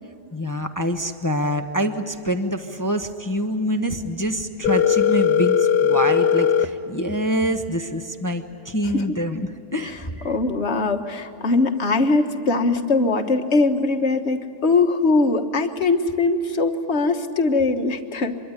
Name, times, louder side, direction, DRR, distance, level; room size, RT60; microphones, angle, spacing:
voice 1, 0.3-10.4, equal, 15° left, 7 dB, 0.8 m, -26 dB
Telephone, 4.6-6.6, left 7 dB, 80° left, 1.6 m, -18 dB
voice 2, 10.2-18.4, left 3 dB, 45° left, 6 dB, 1.6 m, -21 dB
25.0 x 23.0 x 9.8 m, 2.7 s
omnidirectional pair, 1.8 m